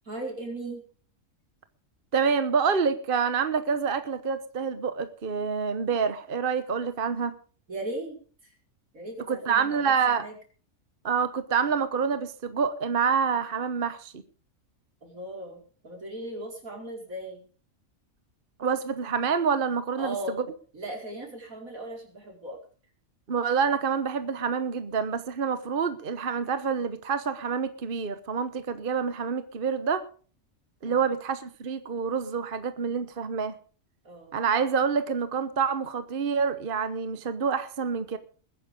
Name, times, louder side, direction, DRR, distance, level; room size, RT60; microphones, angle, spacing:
voice 1, 0.1-0.8 7.7-8.2 8.9-9.9 10.2-10.3 15.0-17.4 20.0-20.4 20.7-22.6 30.9-31.1 34.0-34.3, right 1 dB, 80° right, 1 dB, 5.8 m, -37 dB
voice 2, 2.1-7.3 9.3-10.3 11.0-14.2 18.6-20.5 23.3-30.1 30.8-33.6 34.3-38.2, right 6 dB, 45° right, 11 dB, 1.2 m, -27 dB
21.0 x 10.0 x 5.3 m, 0.41 s
omnidirectional pair, 1.4 m